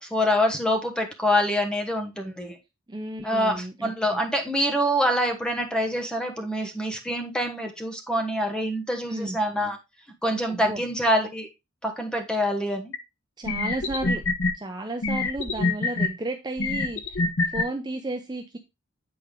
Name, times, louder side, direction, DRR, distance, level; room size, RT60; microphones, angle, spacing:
voice 1, 0.0-2.6 3.2-9.8 10.2-11.5 11.8-12.9, equal, 5° left, 1.2 m, -25 dB
voice 2, 2.9-4.2 9.1-9.4 10.5-10.8 13.4-14.2 14.5-18.6, right 2 dB, 20° right, 0.6 m, -33 dB
sound 1, 12.9-13.0 13.4-14.5 15.0-16.1 16.6-17.6, left 3 dB, 70° left, 0.9 m, -25 dB
8.4 x 4.4 x 3.7 m
head